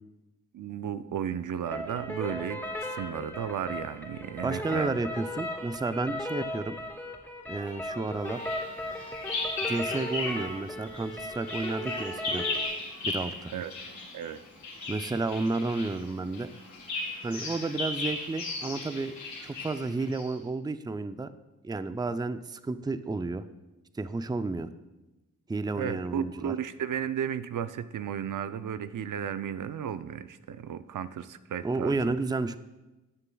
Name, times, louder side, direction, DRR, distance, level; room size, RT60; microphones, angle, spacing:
voice 1, 0.5-5.0 13.5-13.7 14.1-14.4 25.8-32.1, right 8 dB, 65° right, 12 dB, 0.5 m, -34 dB
sound 1, 1.7-12.7, left 1 dB, 5° left, 3.1 m, -37 dB
voice 2, 4.4-6.8 7.5-8.5 9.6-12.4 13.0-13.5 14.9-16.5 17.2-19.1 19.4-21.3 21.6-23.4 23.9-24.7 25.5-26.5 31.6-32.6, right 3 dB, 10° right, 12 dB, 0.4 m, -31 dB
Bird vocalization bird call bird song, 8.3-10.5 10.8-20.3, left 3 dB, 90° left, 3.5 m, -36 dB
17.5 x 6.7 x 2.3 m, 1.1 s
cardioid pair, 45°, 34 cm